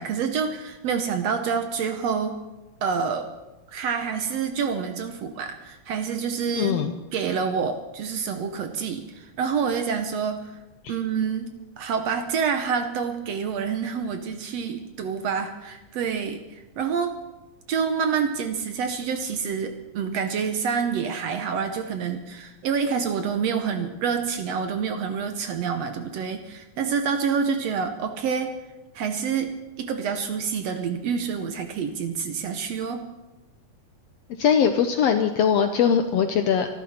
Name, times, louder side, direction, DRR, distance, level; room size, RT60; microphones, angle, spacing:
voice 1, 0.0-2.4 2.8-3.3 3.7-6.7 7.1-10.4 10.9-16.4 16.8-17.2 17.7-28.6 29.0-33.1, right 6 dB, 65° right, 7 dB, 1.8 m, -27 dB
voice 2, 6.5-6.9 10.8-11.0 34.4-36.7, left 7 dB, 75° left, 7 dB, 1.6 m, -21 dB
25.0 x 12.0 x 4.3 m, 1.0 s
omnidirectional pair, 3.6 m